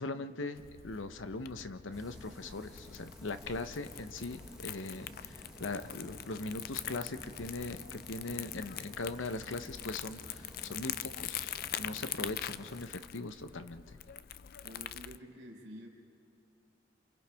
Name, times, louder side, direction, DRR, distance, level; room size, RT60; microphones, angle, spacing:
voice 1, 0.0-14.0, left 2 dB, 75° left, 10 dB, 0.9 m, -40 dB
Crumpling crinkling, 0.5-15.2, left 11 dB, 50° left, 0.4 m, -44 dB
sound 1, 1.9-12.9, equal, 5° right, 1.3 m, -53 dB
voice 2, 14.6-15.9, equal, 65° right, -1 dB, 3.9 m, -49 dB
29.5 x 28.0 x 3.5 m, 2.7 s
head